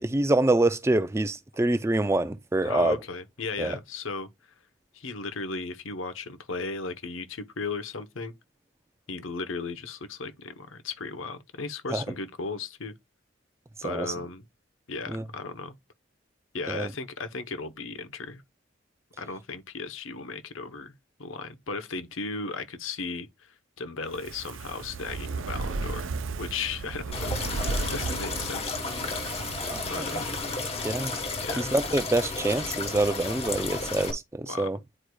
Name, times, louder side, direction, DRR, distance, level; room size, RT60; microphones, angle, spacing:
voice 1, 0.0-3.0 3.6-3.8 11.9-12.0 13.8-14.1 15.1-15.2 16.7-16.9 29.7-30.2 30.8-31.2 31.5-34.8, right 2 dB, 15° right, 0.3 m, -26 dB
voice 2, 2.6-4.3 4.9-8.3 9.1-12.9 13.8-14.4 14.9-15.7 16.5-18.4 19.2-20.9 21.2-29.1 29.9-30.5 31.4-31.7 34.5-34.7, left 4 dB, 80° left, 1.0 m, -36 dB
Fire, 24.1-31.4 31.7-31.8, right 3 dB, 80° right, 0.6 m, -35 dB
sound 1, 27.1-34.1, left 3 dB, 30° left, 1.2 m, -32 dB
9.9 x 4.7 x 2.3 m
head